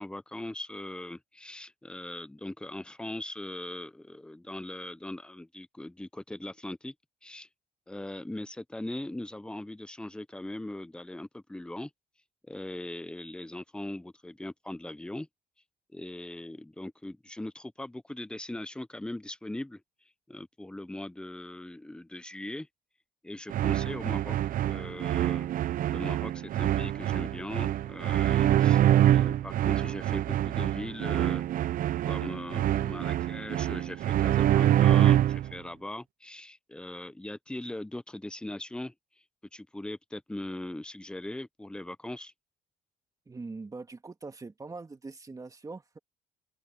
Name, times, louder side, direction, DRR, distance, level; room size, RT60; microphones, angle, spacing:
voice 1, 0.0-6.9 7.2-7.5 7.9-11.9 12.5-15.3 15.9-19.8 20.3-22.7 23.2-24.4 24.6-25.5 25.9-31.4 32.0-38.9 39.5-42.3, left 1 dB, 5° left, 0.8 m, -40 dB
sound 1, 23.5-35.5, right 12 dB, 55° right, 0.6 m, -25 dB
voice 2, 43.3-46.0, right 3 dB, 20° right, 2.1 m, -42 dB
cardioid pair, 110°, 17 cm